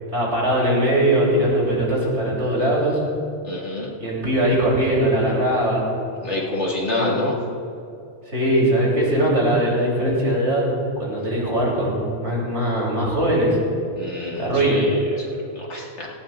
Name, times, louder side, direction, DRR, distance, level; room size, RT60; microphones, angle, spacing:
voice 1, 0.1-3.0 4.0-5.9 7.0-7.1 8.3-13.6 14.4-14.8, right 1 dB, 70° right, -4 dB, 4.0 m, -20 dB
voice 2, 3.4-3.9 6.2-7.4 14.0-16.1, left 2 dB, 75° left, -4 dB, 2.6 m, -27 dB
18.0 x 16.5 x 2.6 m, 2.6 s
omnidirectional pair, 1.2 m